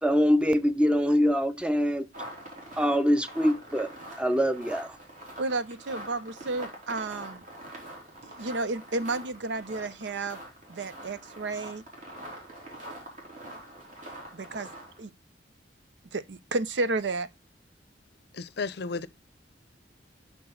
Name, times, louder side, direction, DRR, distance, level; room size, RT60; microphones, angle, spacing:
voice 1, 0.0-2.1 2.8-3.9 4.2-5.0, equal, 5° right, 0.6 m, -24 dB
sound 1, 2.1-15.1, right 1 dB, 45° right, 3.3 m, -44 dB
voice 2, 5.4-7.4 8.2-10.4 10.7-11.8 14.3-14.7 15.0-15.1 16.1-17.3, right 3 dB, 85° right, 0.7 m, -32 dB
voice 3, 18.3-19.1, left 4 dB, 65° left, 0.6 m, -33 dB
6.1 x 6.1 x 3.7 m
head